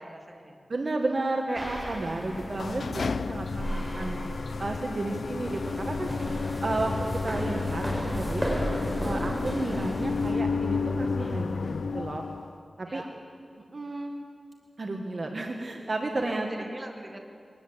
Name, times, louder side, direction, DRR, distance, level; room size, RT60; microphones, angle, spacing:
voice 1, 0.0-0.6 12.9-13.1 16.1-17.2, right 1 dB, 25° right, 2 dB, 2.7 m, -40 dB
voice 2, 0.7-4.2 4.6-6.1 6.6-6.9 7.2-8.6 9.0-12.2 12.8-13.0 13.7-14.1 14.8-16.5, right 2 dB, 50° right, 2 dB, 1.7 m, -32 dB
sound 1, 1.5-10.3, equal, 5° right, 6.4 m, -34 dB
sound 2, 2.2-12.5, left 4 dB, 80° left, 0.5 m, -32 dB
22.5 x 18.5 x 8.1 m, 2.3 s
wide cardioid pair, 85°, 0 cm